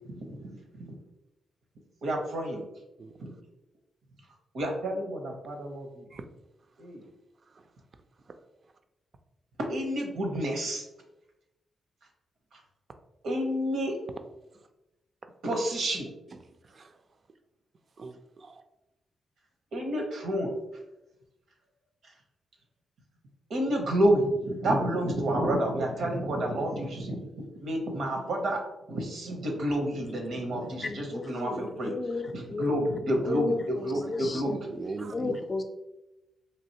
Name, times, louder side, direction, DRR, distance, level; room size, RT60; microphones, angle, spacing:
voice 1, 0.1-0.5 0.8-0.9 2.0-2.6 3.2-3.3 4.5-6.0 6.8-7.0 9.7-10.8 13.2-13.9 15.4-16.1 19.7-20.5 23.5-27.2 27.6-28.6 28.9-31.9 32.3-34.7 35.2-35.3, right 1 dB, 75° right, 2 dB, 0.7 m, -29 dB
voice 2, 18.0-18.6 31.5-31.6 33.9-35.4, right 4 dB, 55° right, 7 dB, 0.4 m, -40 dB
voice 3, 30.6-34.6 35.1-35.6, left 3 dB, 45° left, 6 dB, 0.5 m, -33 dB
3.2 x 2.6 x 2.7 m, 0.96 s
supercardioid pair, 45°, 0 cm